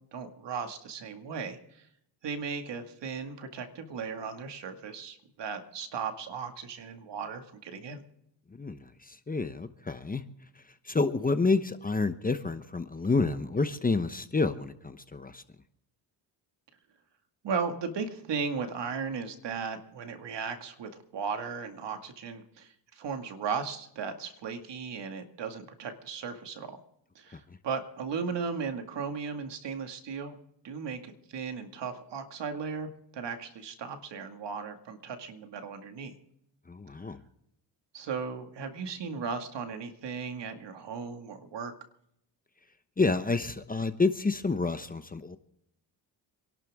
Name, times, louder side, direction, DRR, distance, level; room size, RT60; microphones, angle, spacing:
voice 1, 0.1-1.6 2.2-8.0 17.4-26.8 27.2-30.4 30.6-36.1 37.9-41.7, right 5 dB, 65° right, 6 dB, 2.2 m, -36 dB
voice 2, 8.6-10.2 10.8-15.4 36.7-37.2 43.0-45.4, left 3 dB, 20° left, 10 dB, 0.9 m, -29 dB
27.0 x 12.0 x 3.6 m, 0.75 s
cardioid pair, 95°, 46 cm